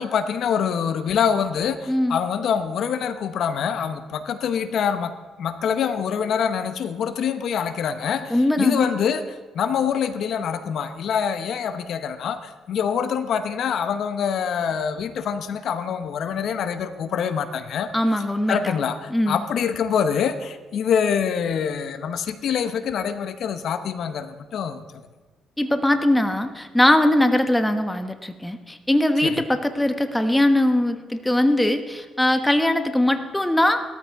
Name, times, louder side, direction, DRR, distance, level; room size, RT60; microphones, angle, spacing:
voice 1, 0.0-5.1 5.4-17.9 18.5-25.0 29.2-29.4, left 7 dB, 70° left, 10 dB, 0.9 m, -25 dB
voice 2, 1.9-2.2 8.3-8.9 17.9-18.8 19.1-19.4 25.6-33.8, left 1 dB, 10° left, 8 dB, 1.2 m, -21 dB
17.5 x 13.5 x 4.7 m, 1.3 s
cardioid pair, 90°, 0 cm